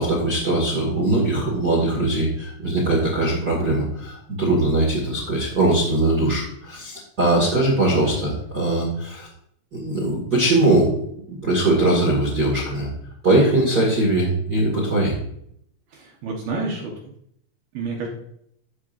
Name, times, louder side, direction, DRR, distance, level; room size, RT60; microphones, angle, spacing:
voice 1, 0.0-9.3 9.7-12.9 13.2-15.2, right 2 dB, 50° right, -4 dB, 1.1 m, -21 dB
voice 2, 7.9-8.3 15.9-16.9 17.7-18.1, right 3 dB, 70° right, -1 dB, 2.6 m, -30 dB
15.0 x 5.7 x 2.6 m, 0.70 s
omnidirectional pair, 5.3 m